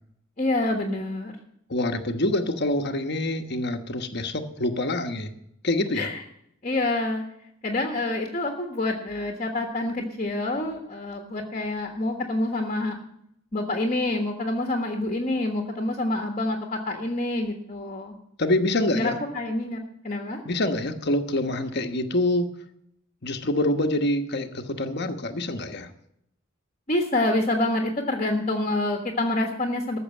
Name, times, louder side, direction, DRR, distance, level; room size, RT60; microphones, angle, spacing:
voice 1, 0.4-1.3 5.9-6.2 6.6-7.2 7.6-13.0 13.5-18.1 18.9-20.4 26.9-30.0, left 2 dB, 35° left, 2 dB, 1.4 m, -27 dB
voice 2, 1.7-5.3 5.6-6.1 18.4-19.2 20.4-22.5 23.2-25.9, left 1 dB, 55° left, 6 dB, 1.2 m, -26 dB
14.0 x 6.7 x 8.3 m, 0.74 s
head